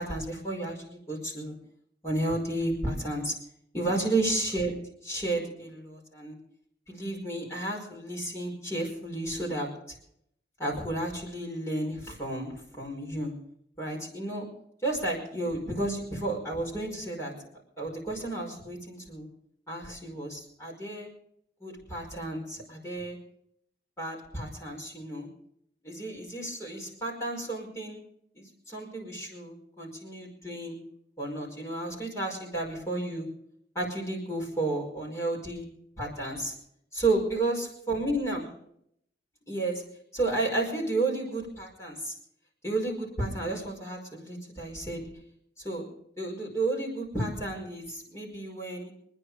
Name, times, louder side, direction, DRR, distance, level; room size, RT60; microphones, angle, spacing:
voice 1, 0.0-1.6 2.0-3.3 3.7-4.7 5.0-6.4 6.9-10.0 10.6-13.3 13.8-14.5 14.8-17.3 17.8-19.3 19.7-21.1 21.6-23.2 24.0-25.3 25.8-28.0 28.3-30.8 31.2-33.3 33.8-35.6 36.0-36.5 36.9-38.5 39.5-39.8 40.1-42.1 42.6-45.0 45.6-45.8 46.2-48.9, right 2 dB, 15° left, -2 dB, 5.3 m, -32 dB
25.5 x 10.5 x 5.0 m, 0.72 s
head